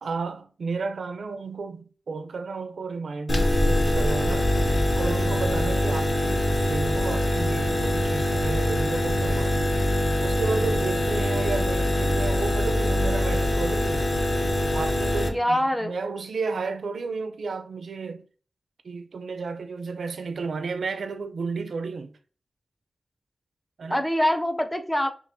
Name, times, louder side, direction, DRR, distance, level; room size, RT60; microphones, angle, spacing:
voice 1, 0.0-4.6 4.9-9.8 10.2-14.0 14.7-18.2 18.8-22.1 23.8-24.0, right 4 dB, 85° right, 0.4 m, -32 dB
sound 1, 3.3-15.3, left 1 dB, 50° left, 0.7 m, -23 dB
voice 2, 15.3-15.9 23.9-25.1, equal, 10° left, 0.4 m, -24 dB
5.0 x 2.8 x 2.6 m
wide cardioid pair, 125°, 0 cm